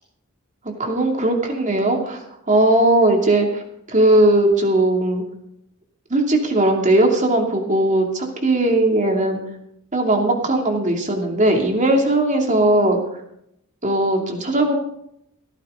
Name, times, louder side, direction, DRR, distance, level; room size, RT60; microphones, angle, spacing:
voice 1, 0.8-3.6 3.9-5.2 6.1-9.4 9.9-13.0 13.8-14.7, right 1 dB, 35° right, 2 dB, 2.8 m, -18 dB
16.5 x 15.0 x 3.9 m, 0.76 s
head